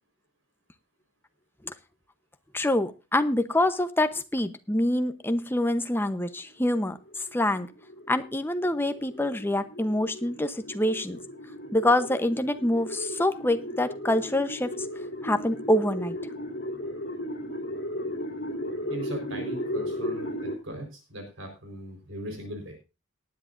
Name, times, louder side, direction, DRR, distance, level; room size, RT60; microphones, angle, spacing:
voice 1, 2.5-7.7 8.1-11.2 11.7-14.9 15.2-16.2, left 1 dB, 10° left, 9 dB, 0.9 m, -26 dB
sound 1, 6.4-20.6, equal, 55° left, 3.2 m, -36 dB
voice 2, 18.9-22.8, equal, 60° right, 4 dB, 4.5 m, -39 dB
19.0 x 10.0 x 2.6 m, 0.29 s
head